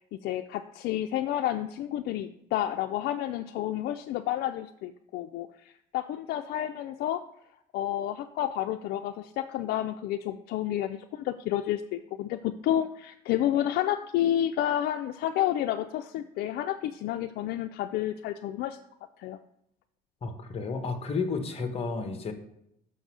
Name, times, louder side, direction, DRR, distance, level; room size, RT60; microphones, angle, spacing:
voice 1, 0.0-7.2 7.7-18.8 19.2-19.4, left 12 dB, 75° left, 6 dB, 0.4 m, -30 dB
voice 2, 20.2-22.3, left 4 dB, 35° left, 6 dB, 1.2 m, -32 dB
6.0 x 3.9 x 6.2 m, 0.78 s
cardioid pair, 110°, 17 cm